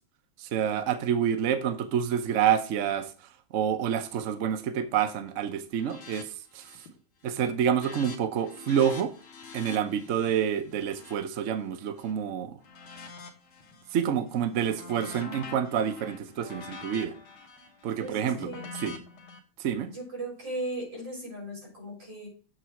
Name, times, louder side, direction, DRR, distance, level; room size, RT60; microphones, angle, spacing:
voice 1, 0.4-3.1 3.5-6.6 7.2-9.1 9.5-12.5 13.9-17.1 17.8-18.5 18.8-18.9 19.6-19.9, right 8 dB, 80° right, 0.6 m, -28 dB
sound 1, 5.8-6.2 6.5-7.0 7.3-12.1 12.6-13.9 14.3-19.4, left 4 dB, 70° left, 1.9 m, -45 dB
voice 2, 18.0-18.7 19.8-22.3, right 1 dB, 55° right, 4.6 m, -37 dB
7.7 x 3.9 x 4.4 m
omnidirectional pair, 2.3 m